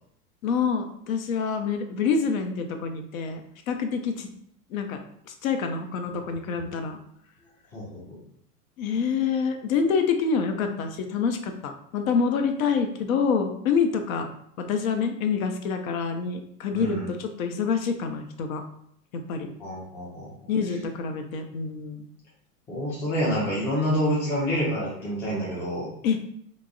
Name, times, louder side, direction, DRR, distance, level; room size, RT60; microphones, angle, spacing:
voice 1, 0.4-3.4 3.7-4.3 4.7-5.0 5.3-7.0 8.8-14.3 14.6-18.6 19.1-19.5 20.5-22.1 26.0-26.2, left 5 dB, 60° left, 6 dB, 0.5 m, -27 dB
voice 2, 7.7-8.2 16.7-17.1 19.6-20.3 22.7-25.9, equal, 5° left, -6 dB, 0.3 m, -27 dB
3.4 x 2.0 x 2.2 m, 0.68 s
hypercardioid pair, 100°, 47 cm